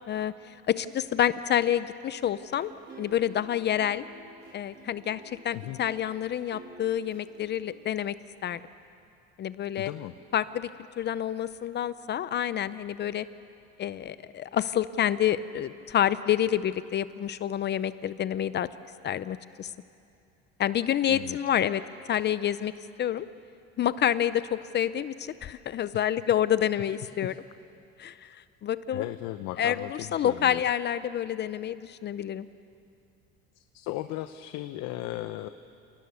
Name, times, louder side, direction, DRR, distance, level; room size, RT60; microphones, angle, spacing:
voice 1, 0.1-2.7 3.0-4.0 4.5-8.1 8.4-8.6 9.4-9.9 10.3-10.7 11.0-13.3 13.8-18.7 19.0-19.7 20.6-21.8 22.1-22.7 23.0-23.3 23.8-27.3 28.0-28.4 28.6-29.0 29.6-32.5, left 10 dB, 35° left, 15 dB, 0.6 m, -28 dB
sound 1, 2.5-8.3, right 2 dB, 35° right, 5.5 m, -50 dB
voice 2, 9.8-10.1 21.1-21.4 25.9-26.1 26.8-27.4 28.9-30.6 33.6-35.5, left 15 dB, 70° left, 10 dB, 0.8 m, -37 dB
29.0 x 18.0 x 7.0 m, 2.6 s
cardioid pair, 125°, 29 cm